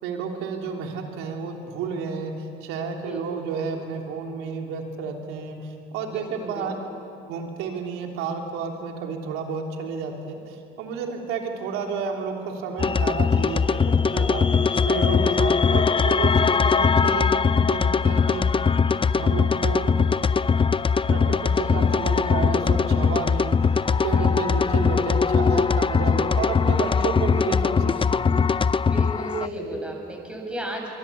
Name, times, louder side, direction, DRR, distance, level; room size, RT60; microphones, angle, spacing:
voice 1, 0.0-6.8 7.3-18.6 18.8-19.9 21.1-28.2, right 5 dB, 90° right, 2 dB, 3.2 m, -31 dB
voice 2, 6.0-6.7 14.1-14.8 21.5-21.8 22.2-22.3 24.2-24.6 26.9-27.0 28.8-30.9, right 1 dB, 5° right, 0 dB, 7.8 m, -35 dB
sound 1, 12.8-29.5, left 5 dB, 25° left, 0.6 m, -21 dB
25.5 x 23.5 x 8.5 m, 2.6 s
supercardioid pair, 70°, 21 cm